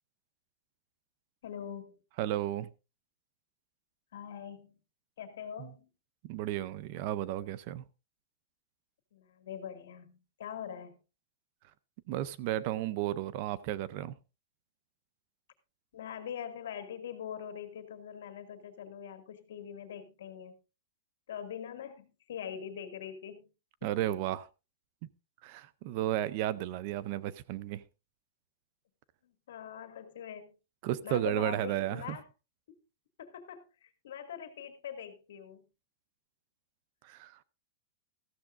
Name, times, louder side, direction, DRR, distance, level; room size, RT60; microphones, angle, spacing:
voice 1, 1.4-2.0 4.1-4.8 5.2-5.9 9.1-10.9 15.9-20.5 21.3-23.5 23.8-23.9 29.2-30.5 31.0-32.2 33.2-35.7, left 8 dB, 65° left, 2.1 m, -43 dB
voice 2, 2.2-2.7 6.2-7.8 12.1-14.1 23.8-24.5 25.4-27.8 30.8-32.2 37.0-37.4, right 13 dB, 35° right, 0.5 m, -33 dB
14.0 x 13.5 x 2.5 m
supercardioid pair, 180°, 0 cm